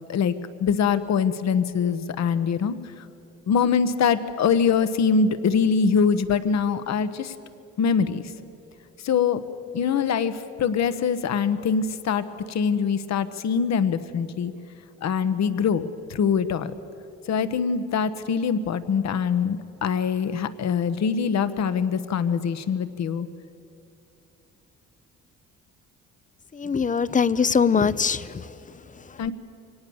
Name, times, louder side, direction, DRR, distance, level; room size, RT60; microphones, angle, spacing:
voice 1, 0.6-3.1 3.5-7.3 7.8-8.2 9.0-9.4 9.7-14.5 15.0-16.7 17.3-23.3 29.2-29.3, left 6 dB, 65° left, 12 dB, 1.2 m, -23 dB
voice 2, 26.5-29.2, left 6 dB, 25° left, 16 dB, 0.6 m, -23 dB
24.0 x 18.0 x 7.2 m, 2.8 s
cardioid pair, 90°, 30 cm